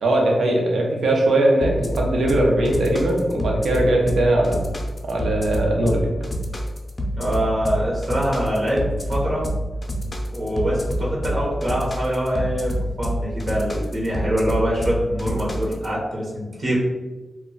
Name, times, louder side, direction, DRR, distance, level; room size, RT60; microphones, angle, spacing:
voice 1, 0.0-4.7 5.1-6.1, right 1 dB, 85° right, -1 dB, 0.6 m, -20 dB
sound 1, 1.6-15.9, equal, 35° left, 0.4 m, -27 dB
voice 2, 7.1-8.8 9.1-9.5 10.3-12.7 13.0-16.8, equal, 55° right, -5 dB, 0.8 m, -24 dB
2.2 x 2.0 x 3.7 m, 1.2 s
wide cardioid pair, 90°, 0 cm